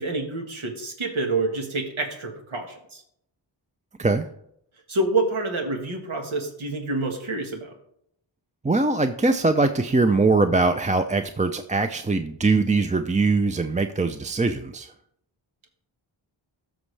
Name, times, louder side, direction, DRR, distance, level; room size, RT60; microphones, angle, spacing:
voice 1, 0.0-3.0 4.9-7.7, right 2 dB, 85° right, 2 dB, 1.6 m, -27 dB
voice 2, 8.6-14.9, right 3 dB, 15° right, 8 dB, 0.5 m, -22 dB
13.0 x 6.2 x 3.3 m, 0.74 s
cardioid pair, 50°, 47 cm